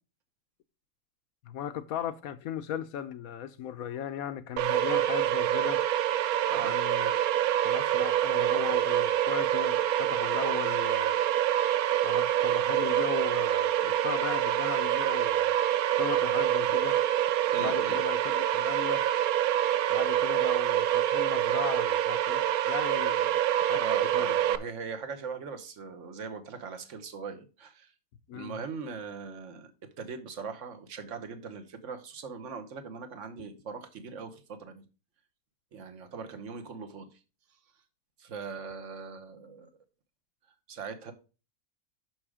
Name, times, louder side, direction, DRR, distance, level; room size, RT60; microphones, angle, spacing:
voice 1, 1.4-5.8 6.6-7.1 7.6-11.1 12.0-15.5 15.9-17.0 17.6-19.0 19.9-23.3 23.6-23.8 24.1-24.4 28.3-28.6, left 10 dB, 70° left, 1.0 m, -37 dB
sound 1, 4.6-24.6, right 12 dB, 75° right, 1.0 m, -26 dB
voice 2, 6.5-6.8 17.5-18.0 20.1-20.3 23.8-27.9 28.3-29.7 30.0-34.8 35.7-37.2 38.2-39.7 40.7-41.1, right 5 dB, 55° right, 1.2 m, -40 dB
6.1 x 6.1 x 4.8 m
omnidirectional pair, 1.6 m